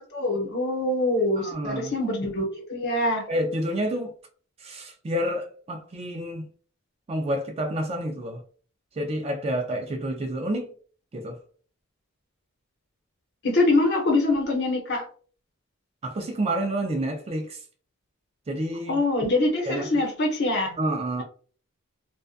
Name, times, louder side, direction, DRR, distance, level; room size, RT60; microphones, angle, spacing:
voice 1, 0.1-3.2 13.4-15.1 18.9-20.8, left 2 dB, 50° left, 0.8 m, -24 dB
voice 2, 1.4-1.9 3.3-4.1 4.6-6.4 7.1-8.4 9.0-10.7 11.1-11.4 16.0-17.6 18.5-19.0 19.6-19.9 20.8-21.2, right 1 dB, 30° right, 0.4 m, -29 dB
2.5 x 2.2 x 2.4 m
head